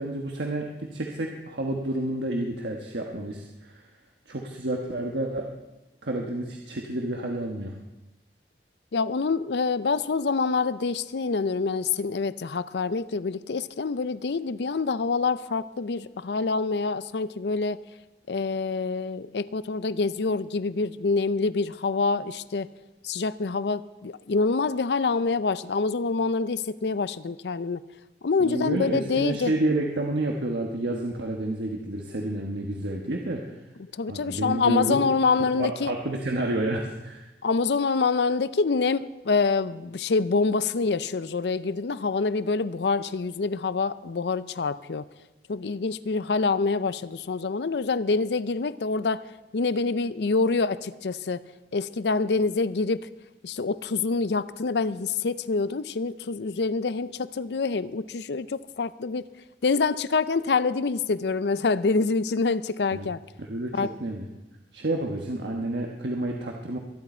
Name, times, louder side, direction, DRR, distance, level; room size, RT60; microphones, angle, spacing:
voice 1, 0.0-3.8 4.3-5.5 6.0-7.7 28.4-33.6 34.1-35.0 35.6-37.3 62.9-63.1 63.4-64.2 64.7-66.8, right 1 dB, 80° right, 1 dB, 1.3 m, -30 dB
voice 2, 8.9-17.8 18.3-22.7 23.0-27.8 28.2-29.5 33.8-35.9 37.4-45.1 45.5-49.3 49.5-51.4 51.7-53.1 53.4-59.2 59.6-63.2 63.7-63.9, left 4 dB, 75° left, 15 dB, 0.5 m, -26 dB
22.5 x 11.0 x 4.4 m, 1.0 s
head